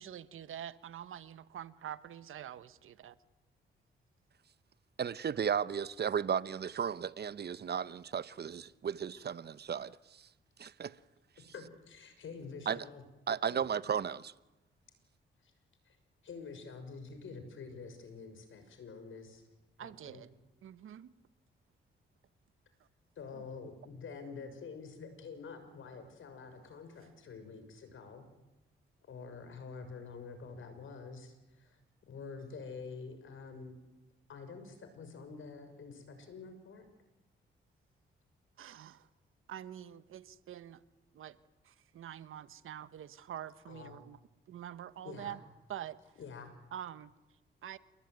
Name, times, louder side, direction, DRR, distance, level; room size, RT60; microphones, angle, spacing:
voice 1, 0.0-3.1 19.8-20.3 20.6-21.1 23.3-23.4 38.6-39.1 39.5-40.8 41.1-41.4 41.6-44.2 44.5-45.4 45.7-46.0 46.7-47.1 47.6-47.8, right 10 dB, 80° right, 1.3 m, -46 dB
voice 2, 5.0-9.9 10.6-10.9 12.7-12.8 13.3-14.3, right 7 dB, 50° right, 1.0 m, -34 dB
voice 3, 11.5-13.0 13.5-13.7 15.4-15.5 15.8-16.0 16.2-19.4 19.8-20.2 23.2-28.3 29.1-33.8 34.3-36.9 43.7-44.0 45.0-45.4 46.2-46.5, left 5 dB, 70° left, 6.2 m, -47 dB
28.5 x 20.5 x 9.5 m
cardioid pair, 65°, 21 cm